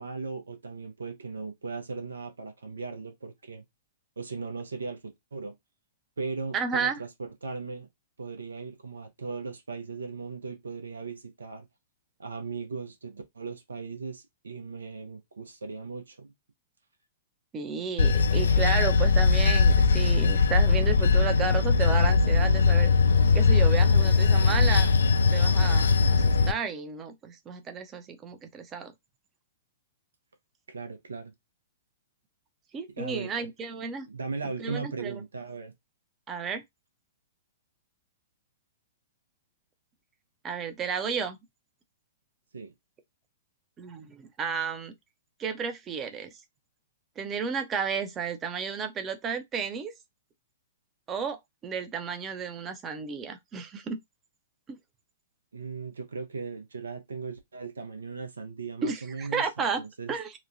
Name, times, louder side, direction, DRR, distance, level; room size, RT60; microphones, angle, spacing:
voice 1, 0.0-3.6 4.2-5.5 6.2-7.9 8.2-11.7 12.2-16.3 30.7-31.3 33.0-33.5 34.1-35.7 42.5-42.7 55.5-60.1, right 4 dB, 80° right, 0.7 m, -38 dB
voice 2, 6.5-6.9 17.5-22.9 23.3-24.9 25.3-28.9 32.7-34.1 34.6-35.2 36.3-36.6 40.4-41.4 43.8-44.9 45.4-46.3 47.2-49.9 51.1-51.4 51.6-54.0 54.7-54.8 58.8-59.8 60.1-60.3, right 6 dB, 25° right, 0.6 m, -32 dB
Bell / Train, 18.0-26.5, left 4 dB, 75° left, 0.4 m, -21 dB
2.9 x 2.2 x 2.6 m
figure-of-eight pair, 110°, 0 cm